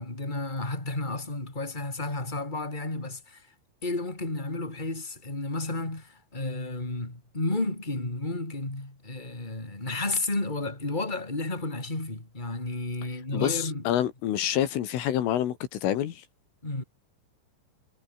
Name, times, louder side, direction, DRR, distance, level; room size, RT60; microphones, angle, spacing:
voice 1, 0.0-3.5 3.8-13.9 16.6-16.8, left 2 dB, 10° left, 4.8 m, -32 dB
voice 2, 13.3-16.2, left 11 dB, 75° left, 4.6 m, -27 dB
omnidirectional pair, 5.8 m